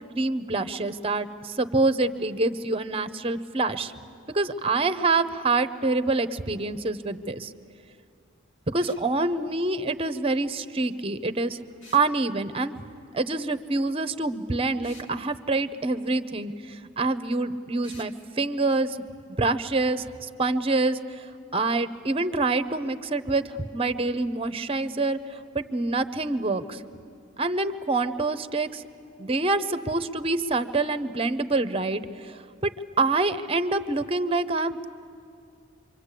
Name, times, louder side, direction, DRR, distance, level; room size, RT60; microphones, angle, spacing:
voice 1, 0.1-3.9 4.3-7.5 8.7-11.6 11.9-12.7 13.1-19.0 19.4-21.0 21.5-25.2 25.5-26.8 27.4-28.8 29.2-32.4 32.6-32.7 33.0-34.9, right 3 dB, 30° right, 12 dB, 0.8 m, -26 dB
sound 1, 8.8-9.1 11.8-12.1 14.8-15.1 17.8-18.1, left 2 dB, 75° left, 2.8 m, -49 dB
26.5 x 24.0 x 8.3 m, 2.5 s
head